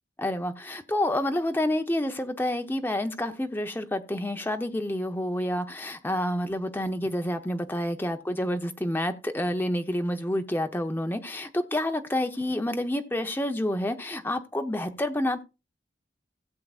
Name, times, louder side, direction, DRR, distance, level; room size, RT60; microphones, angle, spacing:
voice 1, 0.2-15.4, left 1 dB, 10° left, 0.9 m, -28 dB
16.5 x 7.6 x 2.5 m
head